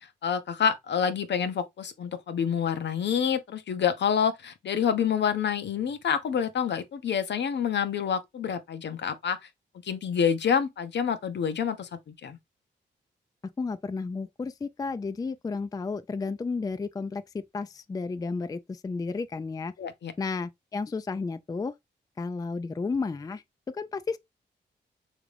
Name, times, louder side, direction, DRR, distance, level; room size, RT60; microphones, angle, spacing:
voice 1, 0.2-9.4 9.8-12.4 19.8-20.1, left 7 dB, 65° left, 0.6 m, -27 dB
voice 2, 13.6-19.7 20.2-21.7 22.2-24.2, left 4 dB, 20° left, 0.3 m, -32 dB
3.5 x 2.5 x 3.2 m
cardioid pair, 50°, 19 cm